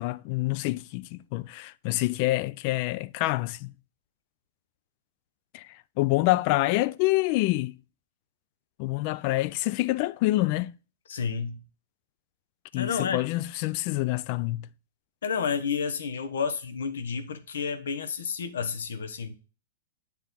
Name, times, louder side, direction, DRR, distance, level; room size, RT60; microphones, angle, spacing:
voice 1, 0.0-3.7 5.5-5.7 6.0-7.7 8.8-10.7 12.7-14.7, left 18 dB, 45° left, 0.3 m, -26 dB
voice 2, 11.1-11.6 12.8-13.2 15.2-19.3, left 6 dB, 80° left, 0.9 m, -30 dB
8.3 x 3.0 x 3.8 m
hypercardioid pair, 130°, 0 cm